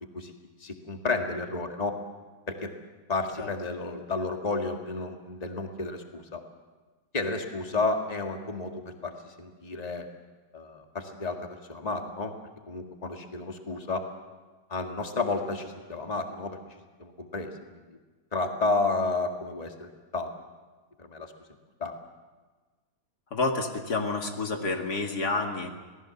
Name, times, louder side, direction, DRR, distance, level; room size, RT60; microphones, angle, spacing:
voice 1, 0.6-2.0 2.5-2.7 3.1-6.4 7.1-10.1 10.5-12.3 12.7-14.1 14.7-18.0 18.3-20.3 21.0-21.3 21.8-22.0, left 3 dB, 25° left, 3 dB, 2.0 m, -32 dB
voice 2, 23.3-25.7, left 3 dB, 80° left, 3 dB, 2.7 m, -29 dB
28.0 x 19.0 x 7.1 m, 1.3 s
omnidirectional pair, 1.7 m